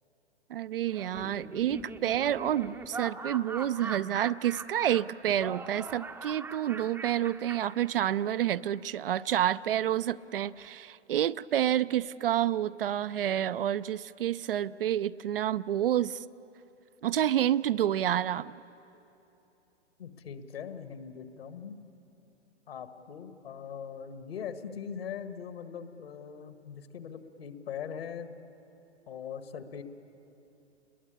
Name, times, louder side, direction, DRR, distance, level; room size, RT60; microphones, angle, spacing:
voice 1, 0.5-16.2 17.0-18.5, right 11 dB, 55° right, 15 dB, 0.5 m, -29 dB
Laughter, 0.9-8.4, right 4 dB, 5° right, 0.7 m, -42 dB
voice 2, 20.0-21.8 22.7-28.3 29.1-29.8, left 7 dB, 60° left, 9 dB, 1.8 m, -41 dB
29.5 x 21.5 x 8.6 m, 3.0 s
figure-of-eight pair, 110°, 34 cm